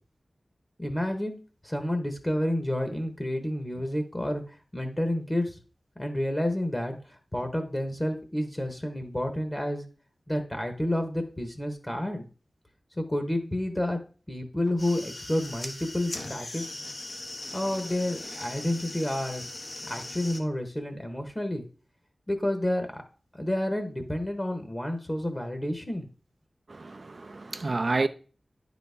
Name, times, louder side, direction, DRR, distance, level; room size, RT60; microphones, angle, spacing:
voice 1, 0.8-1.3 1.6-5.6 6.0-9.8 10.3-12.3 13.0-14.0 14.3-16.8 17.5-19.4 19.9-21.6 22.3-23.0 23.3-26.1, left 1 dB, 20° left, 1.1 m, -30 dB
sound 1, 14.7-20.4, left 2 dB, 60° left, 1.0 m, -39 dB
voice 2, 26.7-28.1, right 3 dB, 55° right, 0.5 m, -29 dB
9.9 x 4.0 x 3.5 m
wide cardioid pair, 70°, 0 cm